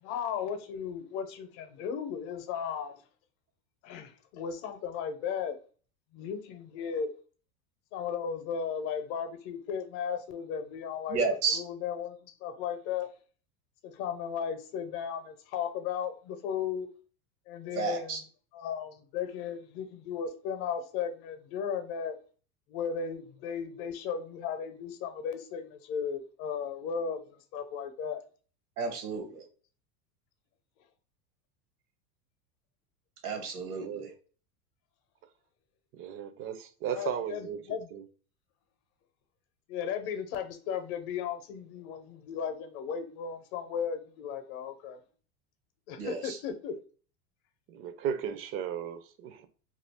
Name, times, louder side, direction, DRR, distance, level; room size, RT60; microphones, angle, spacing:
voice 1, 0.0-3.0 3.8-5.6 6.1-7.1 7.9-11.2 11.5-13.1 13.8-16.9 17.5-18.2 18.5-22.2 22.7-28.2 36.9-37.9 39.7-45.0 45.9-46.8, left 7 dB, 55° left, 0.8 m, -35 dB
voice 2, 11.1-11.6 17.7-18.2 28.8-29.4 33.2-34.1 46.0-46.4, right 5 dB, 85° right, 1.3 m, -32 dB
voice 3, 33.7-34.1 35.9-37.6 37.9-38.0 47.7-49.4, right 8 dB, 30° right, 0.4 m, -36 dB
2.6 x 2.4 x 3.4 m
hypercardioid pair, 105°, 44 cm